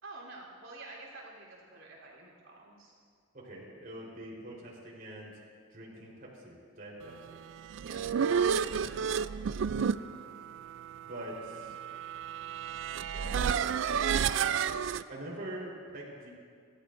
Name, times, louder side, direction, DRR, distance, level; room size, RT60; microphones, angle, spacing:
voice 1, 0.0-2.9 7.8-9.3 14.2-14.6, right 3 dB, 90° right, -3 dB, 3.5 m, -49 dB
voice 2, 3.3-5.3 5.7-7.4 9.8-10.1 11.0-11.8 13.1-13.7 15.1-16.3, right 1 dB, 45° right, -5 dB, 4.0 m, -44 dB
sound 1, 7.5-15.0, right 7 dB, 65° right, 0.3 m, -31 dB
26.0 x 13.0 x 2.6 m, 2.1 s
head